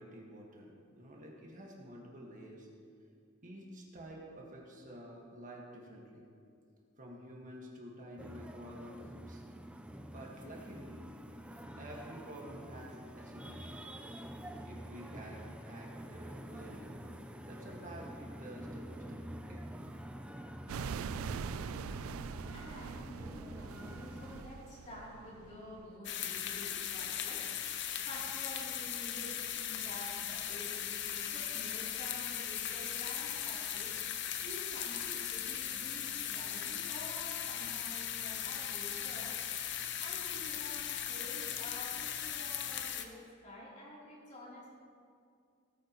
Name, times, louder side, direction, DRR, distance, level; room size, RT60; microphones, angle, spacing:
voice 1, 0.0-2.7 3.4-6.2 7.0-9.4 10.0-11.0 11.8-13.9 14.6-15.4 15.7-16.9 17.4-19.2 19.5-19.6, equal, 35° right, -2 dB, 1.6 m, -50 dB
sound 1, 8.2-24.5, equal, 5° right, 0.4 m, -47 dB
sound 2, 20.7-25.9, right 6 dB, 80° right, 0.3 m, -43 dB
voice 2, 21.6-22.0 22.5-27.8 28.0-39.4 40.0-44.7, left 1 dB, 35° left, -6 dB, 3.3 m, -49 dB
sound 3, 26.0-43.0, left 9 dB, 55° left, 0.7 m, -38 dB
18.0 x 9.2 x 3.1 m, 2.3 s
head